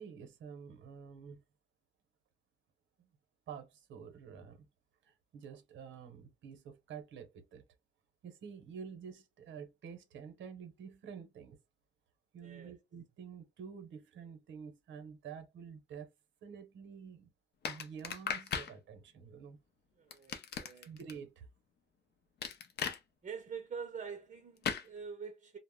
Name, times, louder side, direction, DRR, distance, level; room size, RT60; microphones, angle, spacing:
voice 1, 0.0-1.4 3.0-3.1 3.5-4.7 5.0-7.6 8.2-11.6 12.3-16.1 16.4-17.3 17.6-19.6 20.9-21.5, right 7 dB, 70° right, 0.8 m, -49 dB
voice 2, 12.4-12.7 20.0-20.9 23.2-25.6, right 6 dB, 40° right, 0.6 m, -45 dB
sound 1, 17.6-18.7 20.1-21.1 22.4-23.0 24.6-24.9, left 7 dB, 55° left, 0.6 m, -37 dB
2.0 x 2.0 x 3.5 m
cardioid pair, 90°, 20 cm